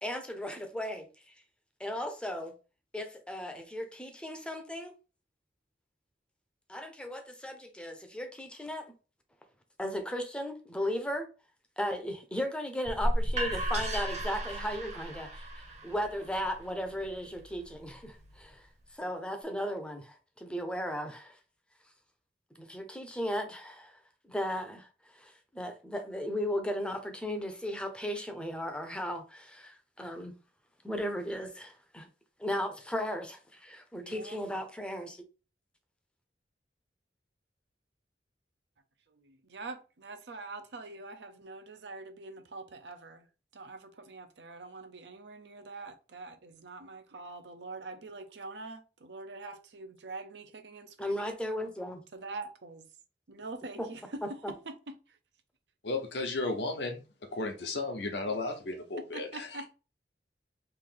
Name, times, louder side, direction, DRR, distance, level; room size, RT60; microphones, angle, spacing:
voice 1, 0.0-1.1 1.8-2.5 2.9-4.9 6.7-8.9 9.8-11.3 11.8-18.7 18.9-21.4 22.6-30.3 30.8-32.1 32.4-35.2 51.0-52.0 53.8-53.9 54.4-54.5, equal, 5° left, 0.6 m, -36 dB
sound 1, 12.8-18.6, equal, 40° right, 0.9 m, -35 dB
voice 2, 33.9-34.4 39.1-43.3 43.5-51.4 52.1-52.9 53.3-54.0 54.3-54.4 54.9-55.0 59.1-59.7, right 3 dB, 75° right, 0.6 m, -44 dB
voice 3, 55.8-57.0 57.3-59.6, left 2 dB, 75° left, 0.9 m, -34 dB
3.3 x 2.6 x 3.7 m
head